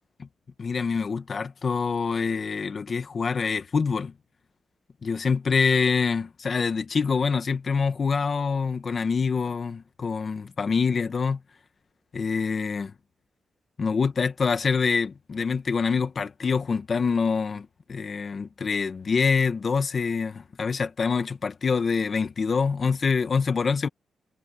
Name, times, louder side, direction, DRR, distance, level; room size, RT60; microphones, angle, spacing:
voice 1, 0.6-4.1 5.0-11.4 12.1-12.9 13.8-23.9, left 5 dB, 40° left, 1.6 m, -25 dB
wide cardioid pair, 140°, 0 cm